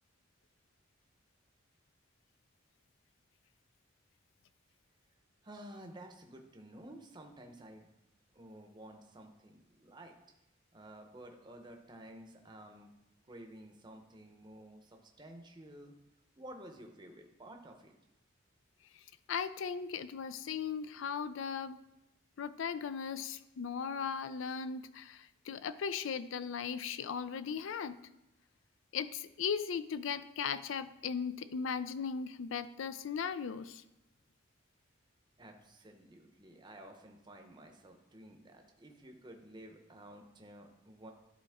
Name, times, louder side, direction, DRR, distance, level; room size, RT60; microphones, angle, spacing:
voice 1, 5.4-7.9 8.3-10.2 10.7-12.9 13.3-15.9 16.4-17.9 35.4-41.1, right 1 dB, 20° right, 3 dB, 0.7 m, -52 dB
voice 2, 19.3-21.8 22.4-28.0 28.9-33.8, left 6 dB, 70° left, 13 dB, 0.4 m, -37 dB
11.5 x 4.2 x 3.5 m, 0.90 s
head